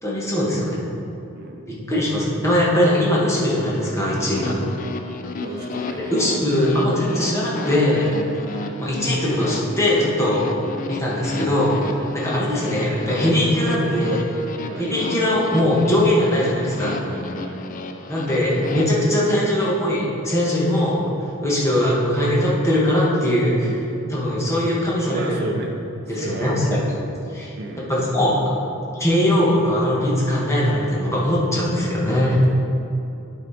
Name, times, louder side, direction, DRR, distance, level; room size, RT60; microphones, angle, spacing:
voice 1, 0.0-0.8 1.9-4.6 6.1-8.1 8.5-10.4 10.9-14.2 14.8-17.0 18.1-21.0 21.4-23.7 24.1-25.5 26.1-26.8 27.3-28.4 29.0-32.4, left 1 dB, 15° left, -6 dB, 1.4 m, -20 dB
voice 2, 1.3-1.7 5.4-6.4 8.4-8.8 10.7-10.9 12.2-12.4 14.7-14.9 17.3-17.6 18.3-18.5 21.4-21.6 23.6-23.9 25.1-25.8 26.1-27.0 27.6-27.9 32.2-32.5, right 2 dB, 50° right, 2 dB, 0.6 m, -35 dB
sound 1, 4.1-18.8, left 2 dB, 40° left, 0.4 m, -33 dB
11.5 x 4.4 x 4.2 m, 2.8 s
head